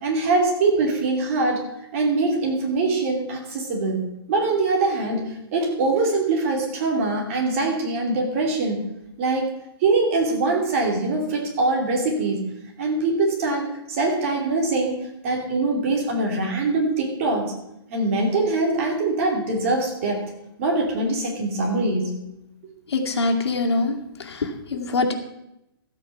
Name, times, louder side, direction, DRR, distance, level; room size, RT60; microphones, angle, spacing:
voice 1, 0.0-1.6 1.9-8.8 9.2-9.5 9.8-12.5 12.8-15.0 15.2-17.5 17.9-20.2 20.6-22.2, right 3 dB, 30° right, 1 dB, 2.8 m, -23 dB
voice 2, 22.9-25.1, left 3 dB, 85° left, 3 dB, 2.3 m, -24 dB
14.0 x 8.3 x 5.7 m, 0.86 s
hypercardioid pair, 170°, 14 cm